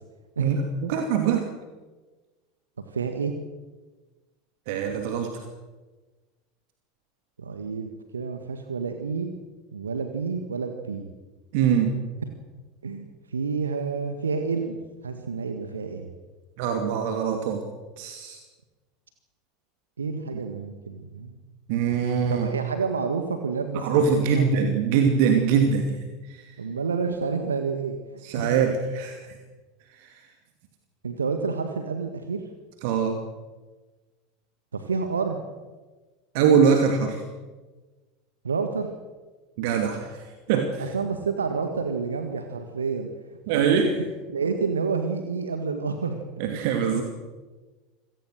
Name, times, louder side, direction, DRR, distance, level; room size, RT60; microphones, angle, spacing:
voice 1, 0.4-1.5 4.7-5.4 11.5-11.9 16.6-17.6 18.0-18.4 21.7-22.5 23.7-26.5 28.2-29.4 30.0-30.2 32.8-33.2 36.3-37.2 39.6-40.9 43.5-43.9 46.4-47.0, right 6 dB, 55° right, 5 dB, 2.6 m, -23 dB
voice 2, 2.9-3.3 7.4-9.3 9.7-11.1 12.8-16.1 20.0-21.4 22.3-24.6 26.6-28.0 28.3-28.6 31.0-32.4 34.7-35.4 38.4-38.9 40.8-43.1 43.5-43.8 44.3-46.2, right 5 dB, 80° right, 7 dB, 1.7 m, -29 dB
26.5 x 18.0 x 6.6 m, 1.3 s
figure-of-eight pair, 80°, 0 cm